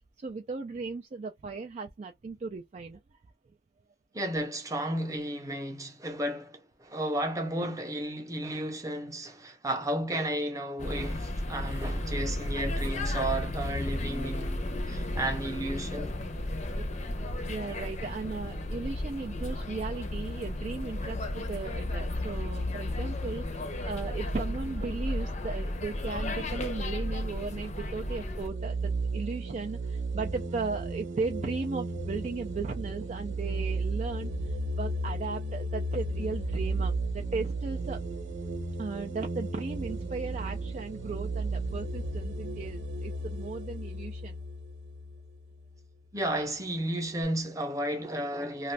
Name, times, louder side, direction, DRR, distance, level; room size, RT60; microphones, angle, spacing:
voice 1, 0.2-3.0 6.1-6.2 16.7-16.9 17.5-38.0 38.8-44.4, right 4 dB, 35° right, 0.3 m, -36 dB
voice 2, 4.1-16.1 46.1-48.7, right 1 dB, 15° right, 0.7 m, -33 dB
sound 1, 10.8-28.5, left 1 dB, 40° left, 0.6 m, -33 dB
sound 2, 28.4-45.8, right 2 dB, 85° right, 0.9 m, -34 dB
2.5 x 2.4 x 3.1 m
head